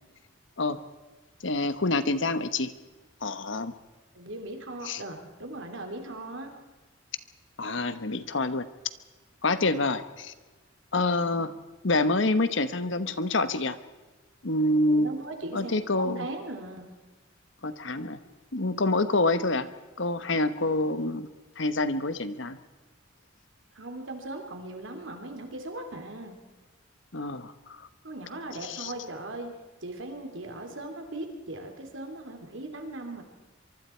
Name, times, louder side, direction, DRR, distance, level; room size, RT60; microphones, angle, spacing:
voice 1, 1.4-2.7 3.2-3.7 4.9-5.0 7.6-8.7 9.4-10.3 10.9-11.5 11.8-13.8 14.4-15.1 15.5-16.3 17.6-18.2 18.5-19.7 20.0-21.3 21.6-22.6 27.1-27.9 28.6-28.9, left 2 dB, 65° left, 12 dB, 1.2 m, -27 dB
voice 2, 4.1-6.5 14.9-16.9 23.7-26.4 28.0-29.5 29.8-33.2, right 2 dB, 70° right, 4 dB, 3.1 m, -39 dB
24.5 x 24.0 x 4.5 m, 1.2 s
head